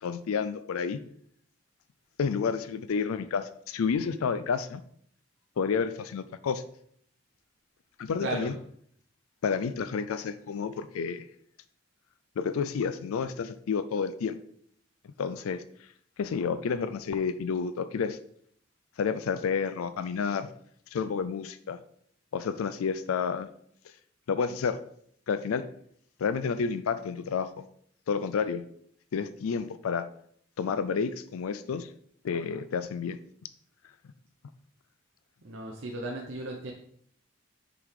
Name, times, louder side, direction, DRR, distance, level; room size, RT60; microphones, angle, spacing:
voice 1, 0.0-1.0 2.2-4.8 5.6-6.6 8.0-8.5 9.4-11.3 12.4-14.4 15.2-15.9 16.2-18.2 19.0-20.5 20.9-21.8 22.3-23.5 23.8-23.9 24.3-24.8 25.3-25.7 26.2-27.7 28.1-28.6 29.1-30.1 30.6-31.9 32.2-33.2, left 6 dB, 90° left, 13 dB, 0.4 m, -30 dB
voice 2, 8.2-8.6 35.4-36.7, right 2 dB, 65° right, -1 dB, 0.8 m, -35 dB
6.8 x 3.6 x 4.8 m, 0.65 s
head